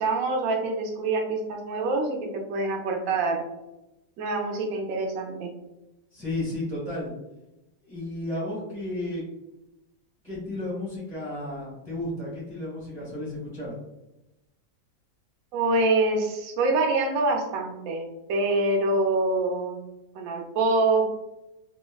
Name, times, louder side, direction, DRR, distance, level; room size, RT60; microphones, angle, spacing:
voice 1, 0.0-3.4 4.2-5.5 15.5-18.0 18.3-19.8 20.1-21.1, right 2 dB, 70° right, 2 dB, 0.8 m, -25 dB
voice 2, 6.1-7.1 7.8-9.2 10.2-13.8, left 1 dB, 25° right, -7 dB, 0.9 m, -33 dB
3.3 x 2.1 x 2.2 m, 0.95 s
omnidirectional pair, 1.9 m